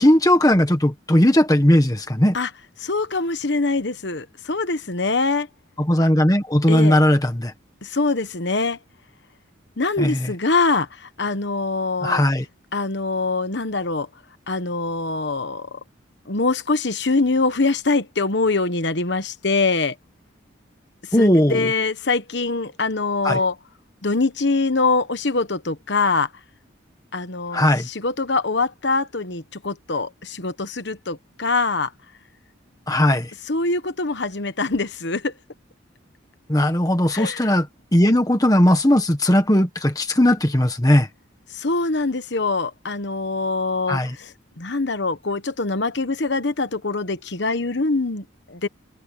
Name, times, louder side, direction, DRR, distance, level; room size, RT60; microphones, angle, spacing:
voice 1, 0.0-2.4 5.8-7.5 10.0-10.3 12.0-12.5 21.1-21.7 23.2-23.4 27.5-27.9 32.9-33.3 36.5-37.7 37.9-41.1 43.9-44.1, left 1 dB, 20° left, 1.5 m, -18 dB
voice 2, 2.8-5.5 6.7-7.0 7.8-8.8 9.8-12.2 12.7-14.1 14.5-15.8 16.3-20.0 21.2-23.5 24.0-26.3 27.1-31.9 33.5-35.3 37.1-37.4 41.5-48.7, left 3 dB, 60° left, 1.2 m, -23 dB
head